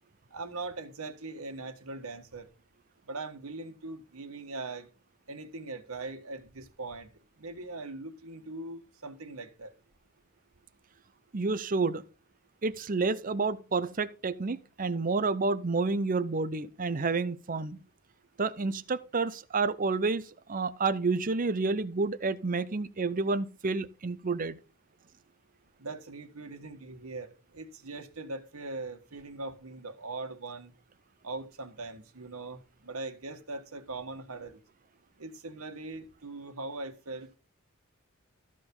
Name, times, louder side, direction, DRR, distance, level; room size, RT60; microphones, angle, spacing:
voice 1, 0.3-2.5 3.1-4.9 5.3-7.1 7.4-9.7 25.8-30.7 31.2-34.6 35.2-37.4, right 3 dB, 90° right, 1.5 m, -41 dB
voice 2, 11.3-12.0 12.6-17.8 18.4-24.6, right 3 dB, 40° right, 0.7 m, -29 dB
13.5 x 5.1 x 5.4 m
head